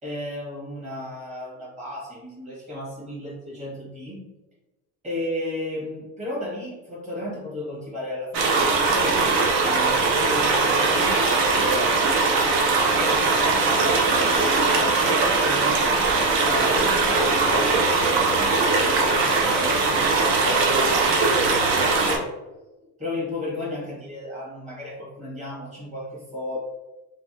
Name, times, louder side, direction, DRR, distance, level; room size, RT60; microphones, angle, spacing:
voice 1, 0.0-4.2 5.0-12.0 13.0-15.8 16.4-22.3 23.0-26.6, left 1 dB, 20° right, -7 dB, 1.5 m, -34 dB
sound 1, 8.3-22.2, right 3 dB, 40° right, 0.5 m, -20 dB
3.1 x 2.2 x 2.7 m, 1.1 s
cardioid pair, 155°, 34 cm